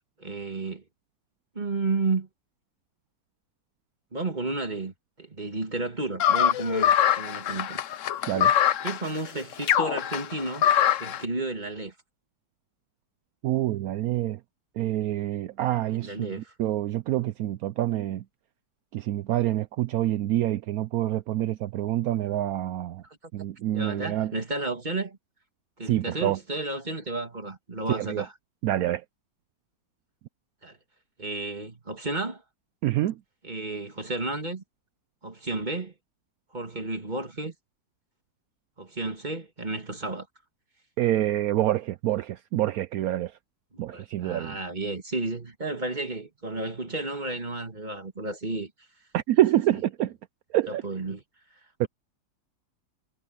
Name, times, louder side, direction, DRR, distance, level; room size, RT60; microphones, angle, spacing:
voice 1, 0.2-0.8 1.5-2.3 4.1-7.8 8.8-10.6 11.0-11.9 16.0-16.5 23.0-23.2 23.7-25.2 25.8-28.3 30.6-30.8 31.2-32.4 33.4-34.6 35.2-35.9 36.5-37.5 38.8-40.3 43.7-48.7 49.7-49.8 50.7-51.2, right 2 dB, 25° right, 2.2 m, -32 dB
sound 1, 6.2-11.2, left 10 dB, 65° left, 0.7 m, -23 dB
voice 2, 13.4-14.4 14.8-16.3 16.6-18.2 18.9-23.0 23.3-24.3 25.9-26.4 27.9-28.2 28.6-29.0 32.8-33.2 41.0-43.3 43.8-44.6 49.1-50.1 50.5-50.8 51.8-51.9, right 13 dB, 80° right, 0.8 m, -26 dB
omnidirectional pair, 2.1 m